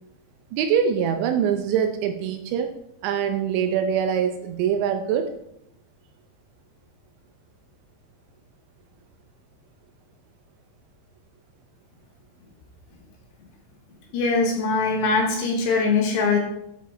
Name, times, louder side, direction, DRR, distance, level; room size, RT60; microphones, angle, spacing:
voice 1, 0.5-2.7 3.0-5.3, right 8 dB, 80° right, 5 dB, 2.7 m, -23 dB
voice 2, 14.1-16.4, left 4 dB, 70° left, 1 dB, 3.1 m, -22 dB
11.5 x 5.2 x 4.4 m, 0.80 s
omnidirectional pair, 5.5 m